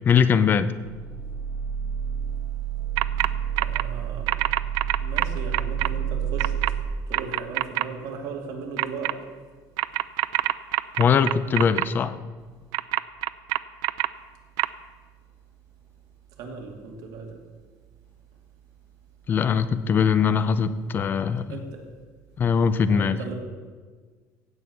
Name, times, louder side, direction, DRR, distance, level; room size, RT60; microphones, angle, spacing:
voice 1, 0.1-0.7 11.0-12.2 19.3-21.6 22.4-23.2, left 6 dB, 30° left, 13 dB, 0.6 m, -21 dB
sound 1, 0.9-6.8, right 8 dB, 15° right, 1.4 m, -29 dB
sound 2, 3.0-3.3 3.6-3.8 4.3-5.9 6.4-6.7 7.1-7.8 8.8-9.1 9.8-11.8 12.7-14.1 14.6-14.7, right 20 dB, 85° right, 0.4 m, -24 dB
voice 2, 3.6-4.3 5.0-6.8 7.1-9.1 16.4-17.4 21.5-21.6 22.9-23.4, right 4 dB, 65° right, 1 dB, 2.6 m, -37 dB
16.0 x 5.6 x 8.2 m, 1.5 s
cardioid pair, 160°, 7 cm